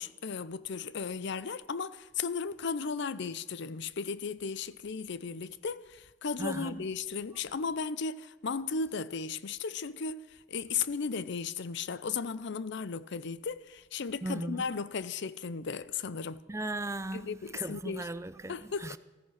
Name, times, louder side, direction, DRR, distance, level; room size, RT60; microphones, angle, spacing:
voice 1, 0.0-16.4 17.1-18.1 18.5-19.0, left 5 dB, 65° left, 0.6 m, -35 dB
voice 2, 6.4-6.8 14.2-14.6 16.5-19.0, right 2 dB, 15° right, 0.5 m, -37 dB
14.5 x 14.5 x 5.8 m
head